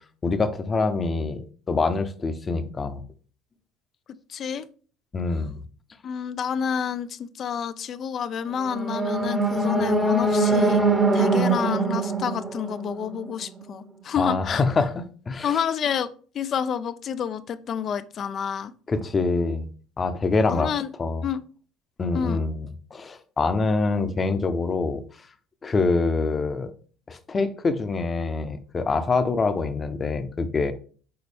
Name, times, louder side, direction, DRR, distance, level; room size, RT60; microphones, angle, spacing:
voice 1, 0.2-3.0 5.1-5.6 14.2-14.9 15.3-15.6 18.9-19.7 20.0-20.7 21.0-21.2 22.0-25.0 25.6-26.7 27.1-30.7, left 3 dB, 30° left, 0.8 m, -25 dB
voice 2, 4.3-4.7 6.0-10.9 11.1-14.6 15.4-16.1 16.3-18.7 20.5-20.9 21.2-21.4 22.1-22.4, left 7 dB, 50° left, 0.4 m, -29 dB
sound 1, 8.5-13.6, right 2 dB, 15° right, 0.9 m, -23 dB
6.9 x 4.1 x 3.4 m
hypercardioid pair, 60°, 0 cm